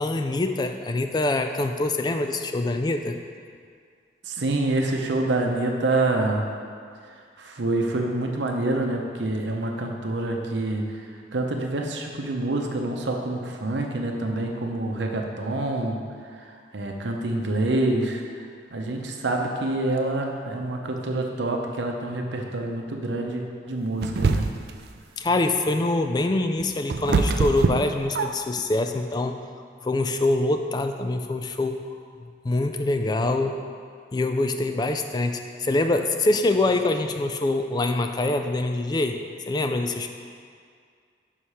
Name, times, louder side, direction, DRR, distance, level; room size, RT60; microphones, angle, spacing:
voice 1, 0.0-3.2 25.2-29.4 29.8-31.8 32.4-33.6 34.1-39.2 39.5-40.1, left 2 dB, 20° left, 6 dB, 0.3 m, -24 dB
voice 2, 4.2-6.5 7.0-11.1 11.3-24.5, right 2 dB, 75° right, 2 dB, 0.7 m, -27 dB
sound 1, 24.0-24.8 26.3-28.6, right 4 dB, 55° right, 0.4 m, -24 dB
5.6 x 4.9 x 5.6 m, 2.1 s
head